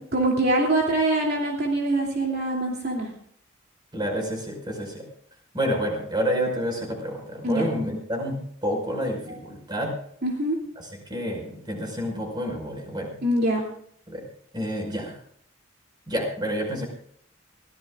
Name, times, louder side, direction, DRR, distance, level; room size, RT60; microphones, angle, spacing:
voice 1, 0.1-3.1 7.4-7.7 9.3-9.4 10.2-10.6 13.2-13.6, right 1 dB, 50° right, -1 dB, 2.9 m, -24 dB
voice 2, 3.9-5.0 5.5-9.9 10.8-13.2 14.1-14.3 14.5-15.2 16.1-16.9, equal, 20° right, 1 dB, 5.5 m, -29 dB
24.0 x 17.0 x 2.5 m, 0.66 s
head